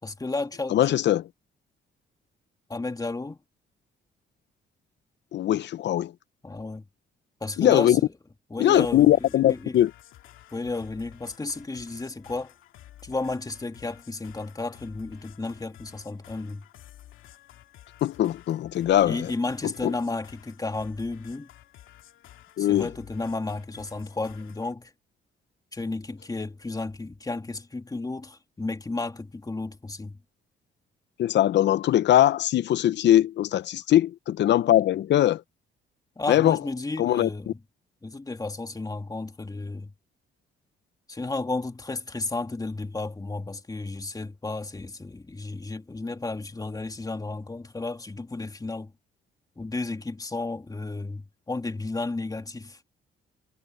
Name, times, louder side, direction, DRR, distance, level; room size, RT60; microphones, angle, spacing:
voice 1, 0.0-0.8 2.7-3.4 6.4-6.9 7.4-8.1 8.5-9.8 10.5-12.5 13.0-16.6 19.0-21.5 22.6-24.9 25.7-30.2 36.2-37.6 38.0-39.9 41.1-48.9 49.6-52.8, left 3 dB, 20° left, 2.9 m, -33 dB
voice 2, 0.7-1.3 5.3-6.1 7.6-8.0 8.6-9.9 18.0-19.3 19.6-19.9 22.6-22.9 31.2-35.4 36.3-36.6 37.0-37.3, left 12 dB, 65° left, 0.7 m, -21 dB
sound 1, 8.7-24.7, left 13 dB, 85° left, 2.5 m, -51 dB
cardioid pair, 90°, 20 cm